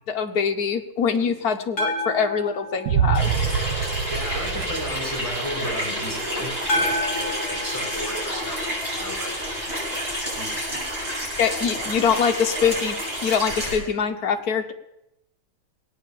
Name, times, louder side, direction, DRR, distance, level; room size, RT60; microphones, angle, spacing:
voice 1, 0.1-3.3 11.4-13.0 13.2-14.7, left 6 dB, 55° left, 5 dB, 1.4 m, -23 dB
sound 1, 1.8-4.0 6.7-9.1, left 1 dB, 35° left, 3.5 m, -30 dB
sound 2, 2.9-5.8, right 8 dB, 65° right, 1.2 m, -25 dB
Water tap faucet / Sink (filling or washing), 3.1-13.8, equal, 30° right, 7.0 m, -29 dB
voice 2, 4.1-9.3 9.9-10.1 10.3-10.8 11.1-11.2 12.5-12.7, equal, 10° left, -4 dB, 4.5 m, -34 dB
19.0 x 9.3 x 7.4 m, 0.85 s
omnidirectional pair, 2.2 m